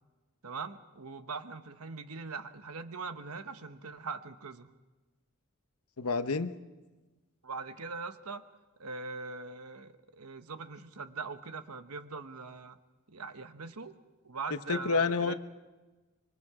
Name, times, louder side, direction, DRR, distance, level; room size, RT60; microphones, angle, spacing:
voice 1, 0.4-4.7 7.4-8.4 8.8-12.8 13.1-14.0 14.2-15.3, right 4 dB, 75° right, 10 dB, 1.1 m, -41 dB
voice 2, 6.0-6.5 14.7-15.3, left 4 dB, 70° left, 11 dB, 0.9 m, -28 dB
25.5 x 23.5 x 4.9 m, 1.2 s
head